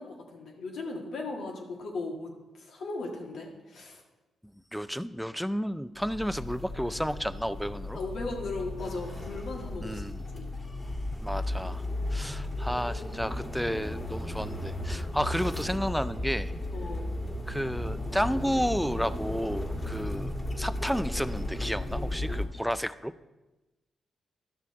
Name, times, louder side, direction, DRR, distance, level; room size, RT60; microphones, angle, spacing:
voice 1, 0.0-4.0 7.9-10.0 10.3-10.5 16.7-17.1, left 3 dB, 75° left, 1 dB, 1.7 m, -37 dB
voice 2, 4.7-8.0 9.8-10.2 11.2-11.8 12.1-16.5 17.5-23.1, equal, ahead, 14 dB, 0.4 m, -32 dB
sound 1, 6.0-22.5, left 1 dB, 35° left, 1.8 m, -35 dB
12.0 x 6.2 x 4.2 m, 1.1 s
cardioid pair, 65°, 0 cm